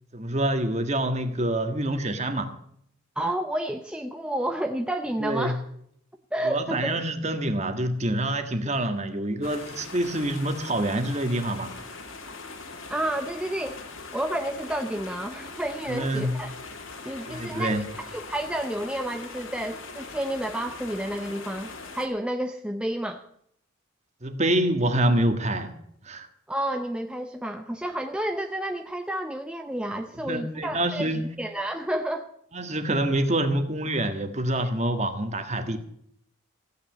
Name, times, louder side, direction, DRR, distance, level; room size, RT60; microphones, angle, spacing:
voice 1, 0.1-2.5 5.2-5.5 6.4-11.7 15.9-16.3 17.3-17.9 24.2-25.7 26.0-26.3 30.2-31.3 32.5-35.8, right 1 dB, 30° right, 7 dB, 1.6 m, -26 dB
voice 2, 3.2-5.6 6.3-7.0 12.9-13.8 14.1-16.5 17.0-23.2 26.5-31.1 31.4-32.3, right 1 dB, 5° right, 5 dB, 0.6 m, -30 dB
sound 1, 9.4-22.1, left 3 dB, 70° left, 2.6 m, -41 dB
15.5 x 9.3 x 7.8 m, 0.70 s
head